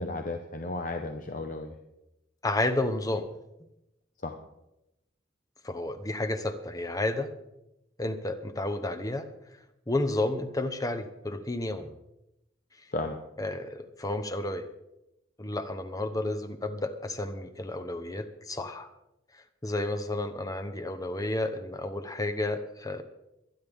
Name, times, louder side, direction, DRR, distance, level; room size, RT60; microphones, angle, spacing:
voice 1, 0.0-1.8 4.2-4.3 12.9-13.2, left 2 dB, 40° left, 5 dB, 0.9 m, -34 dB
voice 2, 2.4-3.3 5.6-7.3 8.0-9.3 9.9-11.9 13.4-14.6 15.4-18.9 19.3-23.0, left 2 dB, 20° left, 8 dB, 0.9 m, -31 dB
23.5 x 10.0 x 3.6 m, 0.90 s
head